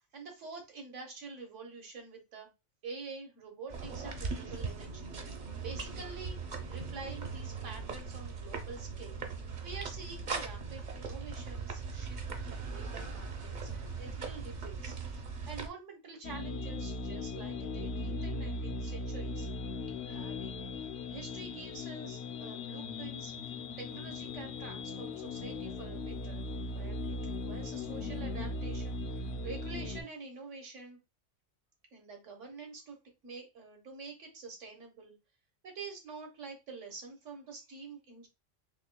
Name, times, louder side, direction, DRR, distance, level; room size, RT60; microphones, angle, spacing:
voice 1, 0.1-2.5 2.8-5.1 5.6-6.4 6.7-9.2 9.6-12.2 12.5-15.0 15.5-19.5 20.0-20.6 21.1-27.0 27.2-31.0 31.9-33.0 33.2-35.1 35.6-38.3, right 4 dB, 75° right, 2 dB, 1.4 m, -47 dB
sound 1, 3.7-15.7, right 4 dB, 45° right, 0.7 m, -40 dB
sound 2, 16.2-30.0, left 2 dB, 65° left, 0.8 m, -38 dB
4.2 x 3.1 x 2.2 m, 0.25 s
omnidirectional pair, 1.3 m